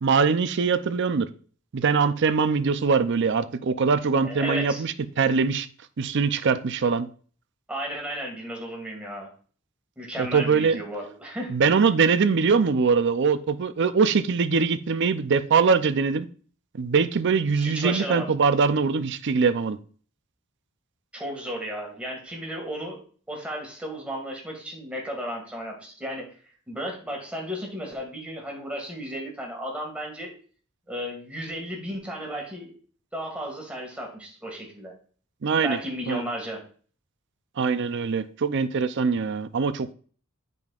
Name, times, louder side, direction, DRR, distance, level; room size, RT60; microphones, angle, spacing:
voice 1, 0.0-1.3 1.7-5.7 6.0-7.1 10.2-10.8 11.5-16.3 16.8-19.8 35.4-35.8 36.1-36.2 37.6-39.9, right 5 dB, 60° right, 0.5 m, -22 dB
voice 2, 4.2-4.8 7.7-9.3 10.0-11.5 17.5-18.3 21.1-23.0 23.3-26.3 26.7-30.3 30.9-32.7 33.1-34.9 35.6-36.6, equal, 5° right, 2.0 m, -34 dB
9.5 x 5.3 x 2.4 m
head